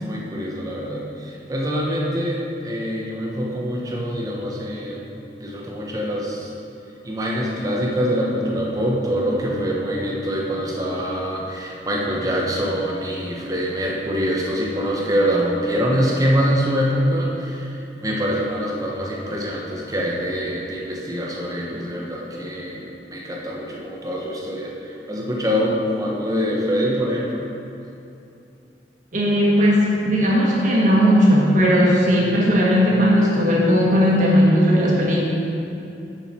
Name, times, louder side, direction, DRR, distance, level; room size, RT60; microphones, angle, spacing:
voice 1, 0.0-5.0 5.4-6.5 7.0-27.5, equal, 20° right, -3 dB, 1.0 m, -24 dB
voice 2, 29.1-35.2, equal, 45° right, -5 dB, 1.7 m, -17 dB
8.0 x 7.2 x 4.3 m, 2.8 s
head